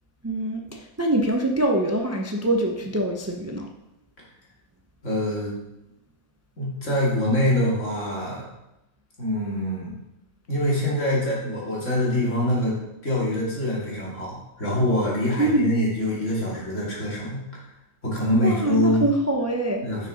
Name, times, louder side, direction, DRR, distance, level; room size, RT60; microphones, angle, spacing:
voice 1, 0.2-3.7 15.4-15.7 18.4-19.9, right 1 dB, 20° right, 1 dB, 0.4 m, -24 dB
voice 2, 5.0-5.6 6.6-8.4 9.2-10.0 10.5-12.8 13.0-17.4 18.0-19.0 19.8-20.1, left 1 dB, 55° left, -6 dB, 3.0 m, -24 dB
6.6 x 6.4 x 5.1 m, 0.92 s
omnidirectional pair, 1.5 m